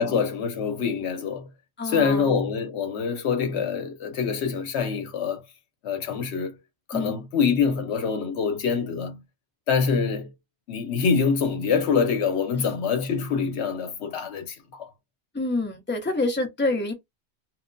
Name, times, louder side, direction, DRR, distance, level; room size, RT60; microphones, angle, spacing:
voice 1, 0.0-1.5 1.8-5.4 5.8-6.6 6.9-9.2 9.7-10.3 10.7-14.9, left 6 dB, 75° left, 0.9 m, -25 dB
voice 2, 1.8-2.4 6.9-7.1 12.6-12.7 15.3-16.9, left 2 dB, 10° left, 0.7 m, -27 dB
2.4 x 2.1 x 3.7 m
omnidirectional pair, 1.1 m